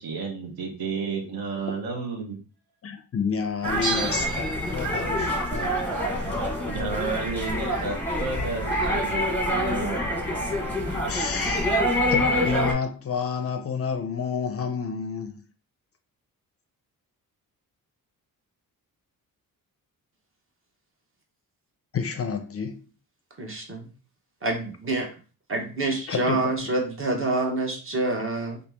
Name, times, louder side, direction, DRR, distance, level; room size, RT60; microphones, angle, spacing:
voice 1, 0.0-2.4 6.7-10.2 11.0-11.2, right 4 dB, 75° right, 0.9 m, -32 dB
voice 2, 2.8-6.5 8.4-8.6 11.0-11.7 12.1-15.4 21.9-22.9 26.1-26.6, left 6 dB, 40° left, 0.5 m, -30 dB
sound 1, 3.6-12.7, equal, 5° left, 0.9 m, -26 dB
Bell, 3.8-5.2 5.5-5.6, right 3 dB, 50° right, 1.3 m, -33 dB
voice 3, 23.4-23.9 24.4-25.1 25.5-28.6, right 2 dB, 35° right, 1.0 m, -27 dB
2.9 x 2.7 x 3.4 m
cardioid pair, 100°, 36 cm